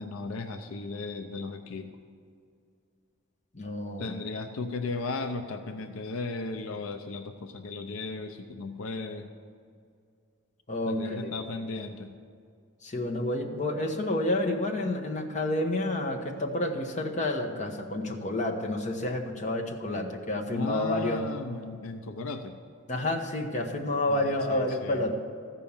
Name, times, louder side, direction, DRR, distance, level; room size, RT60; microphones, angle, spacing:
voice 1, 0.0-1.9 4.0-9.3 10.9-12.1 20.5-22.6 24.1-25.1, left 3 dB, 75° left, 7 dB, 0.6 m, -36 dB
voice 2, 3.5-4.2 10.7-11.3 12.8-21.3 22.9-25.1, left 1 dB, 35° left, 1 dB, 1.1 m, -29 dB
14.0 x 5.5 x 7.2 m, 2.3 s
head